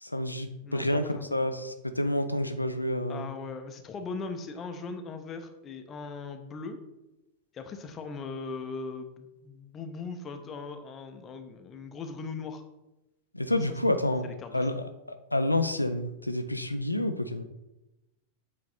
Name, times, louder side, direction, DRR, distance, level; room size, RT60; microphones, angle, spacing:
voice 1, 0.0-3.3 13.3-14.3 14.5-14.8 15.3-17.4, left 1 dB, 85° left, 8 dB, 0.4 m, -29 dB
voice 2, 0.6-1.4 3.1-6.8 7.5-12.6 13.5-13.8 14.2-14.7, left 4 dB, 25° left, 6 dB, 0.7 m, -39 dB
7.7 x 3.1 x 4.3 m, 0.96 s
figure-of-eight pair, 90°, 0 cm